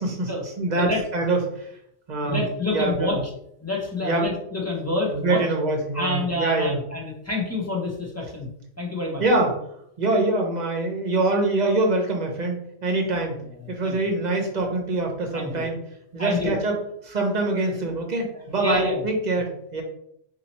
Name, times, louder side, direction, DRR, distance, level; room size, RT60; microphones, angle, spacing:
voice 1, 0.6-1.7 2.1-2.4 2.7-3.2 4.0-4.2 5.1-6.8 9.2-9.5 10.0-13.4 13.7-15.8 16.1-16.8 17.0-19.8, right 2 dB, 40° right, 1 dB, 0.8 m, -24 dB
voice 2, 2.2-3.2 3.6-5.4 5.9-8.5 8.8-9.2 13.6-14.0 15.3-15.6 16.2-16.6 18.6-19.0, left 2 dB, 20° left, -2 dB, 0.5 m, -27 dB
2.8 x 2.8 x 4.1 m, 0.72 s
omnidirectional pair, 1.3 m